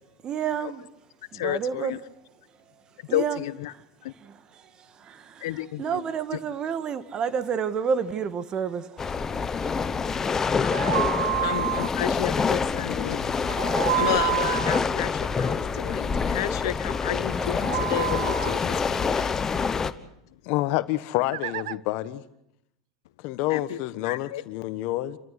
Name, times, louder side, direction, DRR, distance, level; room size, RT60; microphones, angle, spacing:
voice 1, 0.2-0.9 1.3-2.0 3.1-3.4 4.2-4.4 5.0-5.5 5.8-9.0 16.2-16.4, right 7 dB, 35° right, 13 dB, 1.6 m, -29 dB
voice 2, 1.3-2.0 3.1-3.7 4.0-4.1 5.4-6.0 6.3-6.4 10.6-11.1 11.4-13.6 13.9-19.3 23.5-24.4, left 14 dB, 75° left, 15 dB, 1.0 m, -32 dB
sound 1, 9.0-19.9, left 5 dB, 20° left, 1.2 m, -26 dB
sound 2, 10.6-11.9 13.5-14.8 17.3-18.6 21.3-21.8, right 16 dB, 75° right, 0.7 m, -28 dB
voice 3, 20.4-22.2 23.2-25.2, left 16 dB, 60° left, 13 dB, 1.4 m, -28 dB
29.5 x 14.0 x 8.2 m, 0.79 s
hypercardioid pair, 105°, 2 cm